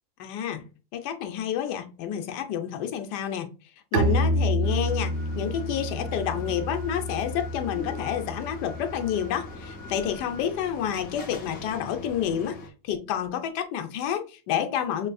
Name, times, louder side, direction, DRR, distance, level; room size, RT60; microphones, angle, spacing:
voice 1, 0.2-0.6 0.9-3.5 3.9-12.6 12.8-15.1, left 9 dB, 90° left, 1.2 m, -29 dB
Bowed string instrument, 3.9-9.5, equal, 85° right, 0.4 m, -29 dB
sound 1, 4.6-12.7, left 2 dB, 50° left, 0.7 m, -42 dB
6.1 x 2.5 x 2.2 m
omnidirectional pair, 1.7 m